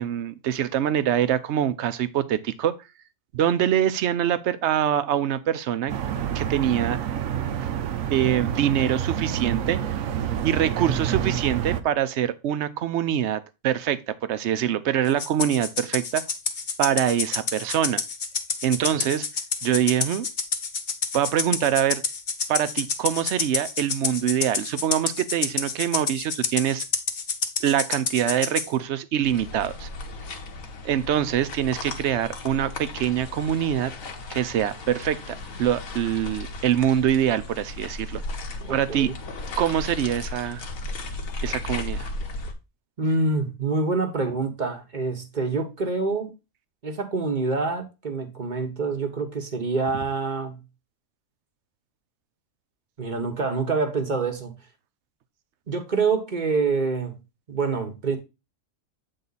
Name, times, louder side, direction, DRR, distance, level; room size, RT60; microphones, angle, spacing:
voice 1, 0.0-2.7 3.3-5.9 6.3-7.0 8.1-9.8 10.4-16.2 16.8-18.0 18.6-19.3 19.6-20.3 21.1-22.0 22.5-26.8 27.6-29.9 30.8-33.9 34.3-38.2 38.7-39.1 39.6-40.6 41.4-42.1, right 10 dB, 65° right, 0.8 m, -24 dB
sound 1, 5.9-11.8, right 9 dB, 80° right, 1.1 m, -28 dB
Rattle (instrument), 15.2-28.7, left 5 dB, 45° left, 0.8 m, -28 dB
sound 2, 29.2-42.5, left 2 dB, 85° left, 1.5 m, -35 dB
voice 2, 38.6-39.1 43.0-46.3 46.8-50.6 53.0-54.5 55.7-57.2 57.5-58.2, right 4 dB, 40° right, 1.1 m, -26 dB
8.2 x 3.8 x 4.0 m
omnidirectional pair, 1.4 m